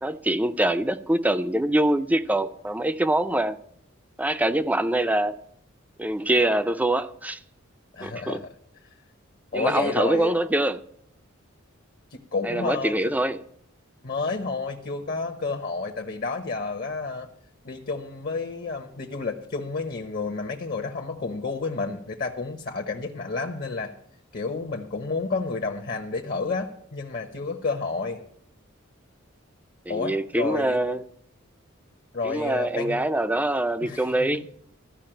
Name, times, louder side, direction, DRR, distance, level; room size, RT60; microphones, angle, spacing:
voice 1, 0.0-3.6 4.2-5.4 6.0-7.4 8.0-8.4 9.5-10.8 12.4-13.4 29.9-31.0 32.2-34.4, right 1 dB, 10° right, 0.4 m, -24 dB
voice 2, 7.9-8.5 9.5-10.4 12.1-13.2 14.0-17.3 17.6-23.9 24.3-28.2 29.9-30.8 32.1-33.0 33.8-34.3, left 4 dB, 50° left, 0.9 m, -30 dB
14.0 x 5.3 x 8.9 m
head